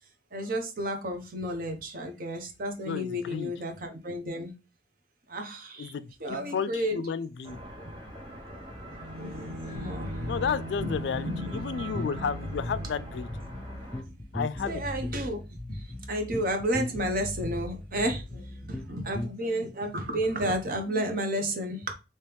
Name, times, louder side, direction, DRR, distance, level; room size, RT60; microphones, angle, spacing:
voice 1, 0.3-4.5 5.3-5.9 6.2-7.0 9.1-10.1 10.8-11.5 13.7-13.8 14.6-15.4 15.7-21.9, equal, 50° right, 0.8 m, -32 dB
voice 2, 2.9-3.5 5.8-7.6 10.3-13.3 14.3-14.8, left 6 dB, 70° left, 0.3 m, -32 dB
sound 1, 7.4-14.0, right 1 dB, 25° right, 1.0 m, -44 dB
Bowed string instrument, 8.9-13.7, right 1 dB, 75° right, 1.1 m, -41 dB
sound 2, 9.8-19.3, left 1 dB, 5° left, 0.5 m, -38 dB
3.0 x 2.9 x 3.3 m
head